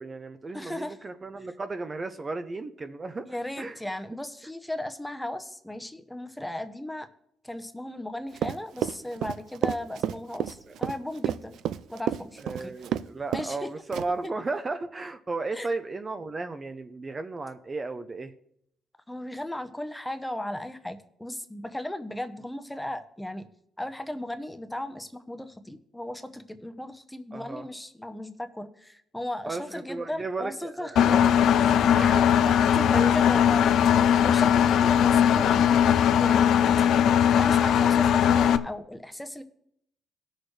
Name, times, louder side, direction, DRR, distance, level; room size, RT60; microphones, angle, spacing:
voice 1, 0.0-3.8 10.7-10.8 12.4-18.3 27.3-27.7 29.5-31.3 31.7-33.1 36.8-37.1, right 3 dB, 30° right, 8 dB, 0.6 m, -35 dB
voice 2, 0.5-1.0 3.3-7.1 7.4-11.6 11.9-12.7 13.3-13.7 14.2-14.3 15.5-15.7 19.1-23.5 23.8-31.1 31.6-31.7 32.4-35.8 36.2-36.6 37.4-39.4, left 1 dB, 5° left, 8 dB, 0.8 m, -36 dB
Run, 8.3-13.1 13.3-13.6 13.9-14.3, right 11 dB, 80° right, 0.4 m, -30 dB
Engine, 31.0-38.6, left 9 dB, 75° left, 0.5 m, -20 dB
17.5 x 6.4 x 3.3 m, 0.72 s
cardioid pair, 90°, 0 cm